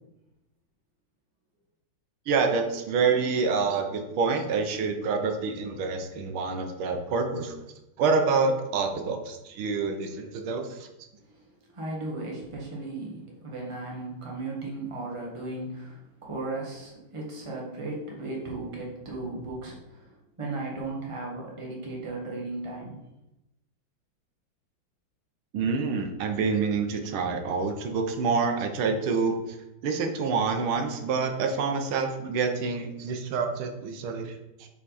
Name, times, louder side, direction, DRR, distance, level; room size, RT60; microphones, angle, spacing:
voice 1, 2.3-7.5 8.0-10.9 25.5-29.6 29.8-34.7, right 4 dB, 85° right, 5 dB, 1.6 m, -27 dB
voice 2, 11.3-23.0, right 2 dB, 20° right, -3 dB, 1.2 m, -36 dB
5.9 x 4.7 x 4.1 m, 0.93 s
omnidirectional pair, 2.2 m